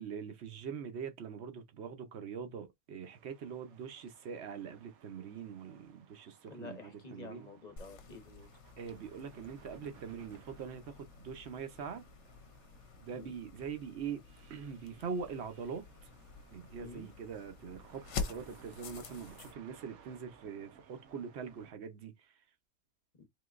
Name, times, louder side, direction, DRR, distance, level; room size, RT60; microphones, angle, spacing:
voice 1, 0.0-7.5 8.8-12.0 13.0-14.2 14.5-16.1 16.5-22.3, right 6 dB, 60° right, 0.8 m, -43 dB
sound 1, 3.0-21.7, right 7 dB, 85° right, 1.2 m, -62 dB
voice 2, 6.5-8.5 13.1-13.3 16.8-17.1 23.2-23.3, left 3 dB, 35° left, 0.9 m, -49 dB
sound 2, 7.8-19.5, left 5 dB, 60° left, 0.9 m, -47 dB
3.8 x 2.8 x 2.4 m
omnidirectional pair, 1.5 m